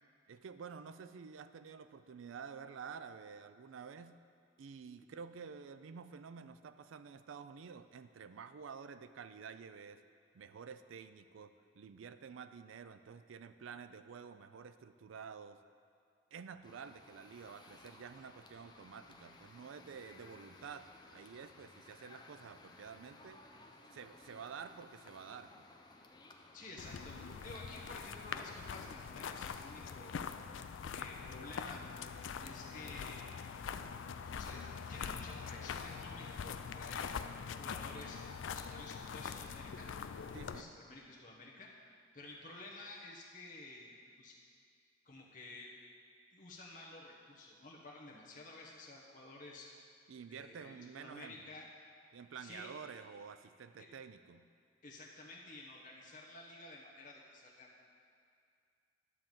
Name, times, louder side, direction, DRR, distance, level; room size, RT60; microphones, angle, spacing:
voice 1, 0.3-4.2 4.6-10.0 10.3-15.6 16.3-23.4 23.9-25.6 40.3-40.8 50.1-51.4 52.1-54.5, right 6 dB, 90° right, 11 dB, 0.4 m, -50 dB
sound 1, 16.6-30.3, left 2 dB, 20° left, 0.5 m, -59 dB
voice 2, 26.5-27.2 27.4-30.3 30.9-31.8 32.4-33.6 34.3-37.1 37.6-39.9 40.3-41.7 42.1-44.4 45.0-45.7 46.3-49.7 50.2-51.7 52.4-52.7 53.8-53.9 54.8-57.9, left 2 dB, 40° left, -3 dB, 0.9 m, -52 dB
sound 2, 26.8-40.6, left 6 dB, 80° left, 0.4 m, -44 dB
11.0 x 3.8 x 7.4 m, 2.3 s
head